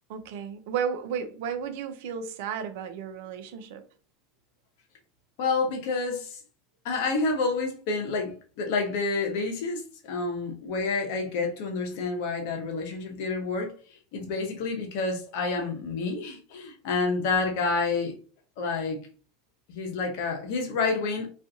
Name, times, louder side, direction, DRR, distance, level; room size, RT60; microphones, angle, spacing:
voice 1, 0.1-3.9, right 7 dB, 65° right, 0.4 m, -33 dB
voice 2, 5.4-6.4 6.8-13.7 14.1-18.1 18.6-19.0 19.7-21.3, left 4 dB, 65° left, 0.8 m, -29 dB
2.5 x 2.4 x 2.5 m
hypercardioid pair, 80°, 0 cm